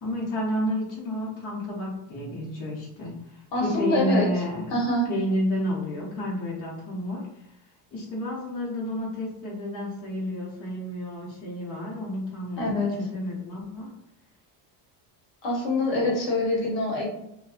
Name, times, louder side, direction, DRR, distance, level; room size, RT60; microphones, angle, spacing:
voice 1, 0.0-4.8 5.1-7.5 7.9-13.9, left 1 dB, 40° left, -5 dB, 0.8 m, -31 dB
voice 2, 3.5-4.3 4.7-5.0 12.6-12.9 15.4-17.1, left 2 dB, 60° left, -2 dB, 1.0 m, -25 dB
2.6 x 2.2 x 2.4 m, 0.82 s
cardioid pair, 140°, 49 cm